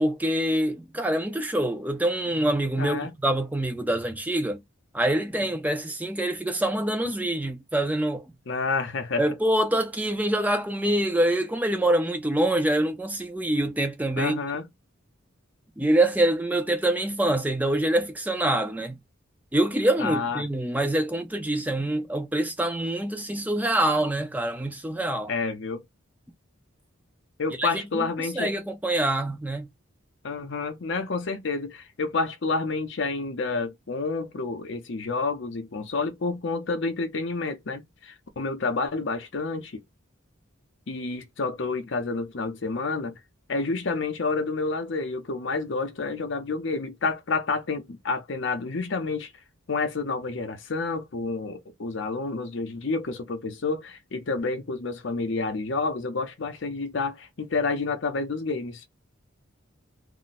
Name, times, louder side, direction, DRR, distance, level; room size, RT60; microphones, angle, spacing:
voice 1, 0.0-4.6 4.9-8.2 9.2-14.4 15.8-19.0 19.5-25.3 27.6-27.9 28.2-29.7, right 1 dB, 10° right, 0.5 m, -25 dB
voice 2, 2.8-3.1 8.5-9.2 14.2-14.7 20.0-20.4 25.3-25.8 27.4-28.6 30.2-39.8 40.9-43.2 43.5-49.3 49.7-58.8, left 3 dB, 60° left, 0.6 m, -29 dB
2.5 x 2.1 x 4.0 m
head